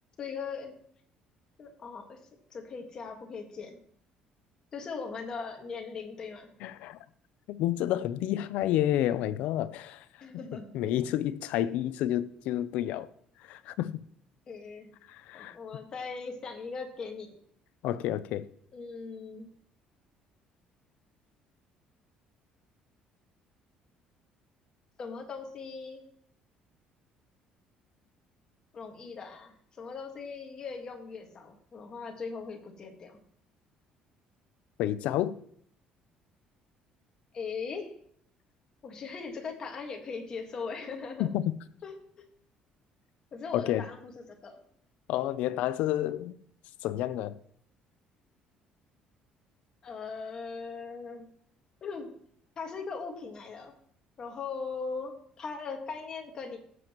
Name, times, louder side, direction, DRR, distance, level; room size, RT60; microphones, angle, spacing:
voice 1, 0.2-0.7 1.6-2.2 2.5-3.8 4.7-6.5 10.2-11.0 14.5-14.9 15.3-17.4 18.7-19.5 25.0-26.0 28.7-33.2 37.3-37.9 38.8-41.3 41.8-42.2 43.3-44.1 44.4-44.6 49.8-51.3 51.8-52.1 52.6-53.7 54.2-56.6, left 5 dB, 30° left, 1.6 m, -39 dB
voice 2, 6.6-7.0 7.5-10.0 10.7-13.1 13.4-14.0 15.1-15.6 17.8-18.5 34.8-35.3 41.2-41.5 43.5-43.8 45.1-46.3 46.8-47.4, left 12 dB, 75° left, 0.5 m, -30 dB
16.0 x 7.7 x 3.0 m
cardioid pair, 170°, 2 cm